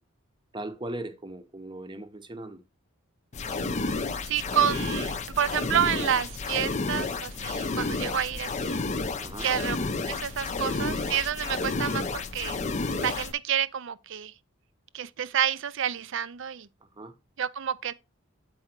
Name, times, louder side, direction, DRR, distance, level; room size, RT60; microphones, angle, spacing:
voice 1, 0.5-2.6 9.2-9.5 16.8-17.1, right 1 dB, 20° right, 0.8 m, -38 dB
sound 1, 3.3-13.3, left 3 dB, 35° left, 0.5 m, -31 dB
voice 2, 4.2-8.8 9.4-9.8 10.0-12.6 13.0-14.3 14.9-16.7 17.4-17.9, right 9 dB, 60° right, 0.5 m, -29 dB
7.8 x 4.8 x 4.4 m
head